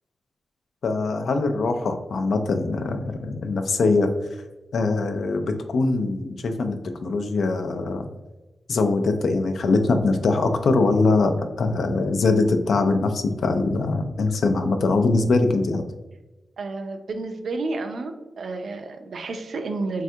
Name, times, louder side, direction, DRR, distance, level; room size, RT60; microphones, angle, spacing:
voice 1, 0.8-4.1 4.7-6.8 7.0-8.1 8.7-11.3 11.6-15.8, left 3 dB, 75° left, 6 dB, 0.3 m, -22 dB
voice 2, 16.6-20.0, right 3 dB, 70° right, 6 dB, 0.3 m, -31 dB
3.3 x 2.3 x 2.7 m, 1.1 s
cardioid pair, 90°, 0 cm